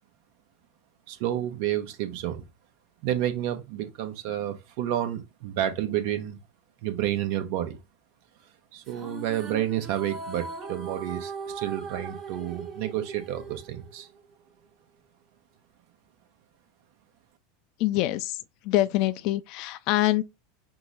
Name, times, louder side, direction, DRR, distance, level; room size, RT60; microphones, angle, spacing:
voice 1, 1.1-2.4 3.0-6.4 6.8-7.8 8.7-14.1, right 12 dB, 60° right, 0.8 m, -30 dB
sound 1, 8.8-14.3, right 4 dB, 35° right, 1.3 m, -39 dB
voice 2, 17.8-18.4 18.6-20.2, left 15 dB, 55° left, 0.4 m, -25 dB
5.7 x 2.1 x 3.9 m
hypercardioid pair, 85°, 0 cm